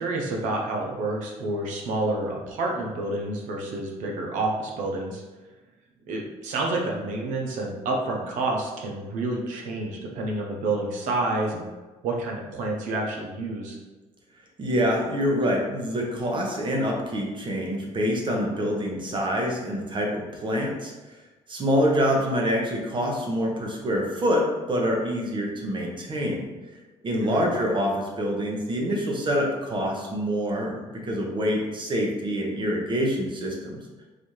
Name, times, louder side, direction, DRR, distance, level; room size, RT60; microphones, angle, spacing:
voice 1, 0.0-5.2 6.1-11.6 12.0-13.8 27.2-27.5, right 2 dB, 80° right, 0 dB, 0.7 m, -29 dB
voice 2, 14.6-20.9 21.5-26.4 27.0-33.8, equal, 40° right, 0 dB, 1.0 m, -26 dB
4.0 x 2.6 x 3.1 m, 1.2 s
cardioid pair, 85°, 13 cm